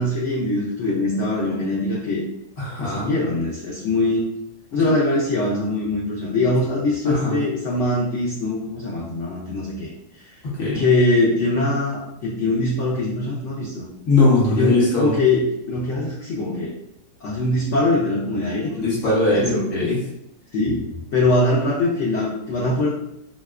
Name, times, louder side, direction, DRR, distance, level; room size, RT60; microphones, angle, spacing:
voice 1, 0.0-2.2 2.8-4.2 4.7-9.9 10.2-10.3 10.7-13.9 14.5-16.7 17.2-19.6 20.5-20.8 21.1-22.9, left 2 dB, 75° left, -4 dB, 0.6 m, -22 dB
voice 2, 2.6-3.1 4.7-4.9 7.0-7.4 10.4-10.8 14.1-15.1 18.8-20.0, left 2 dB, 55° left, -5 dB, 1.1 m, -20 dB
3.1 x 2.8 x 2.3 m, 0.82 s
omnidirectional pair, 1.9 m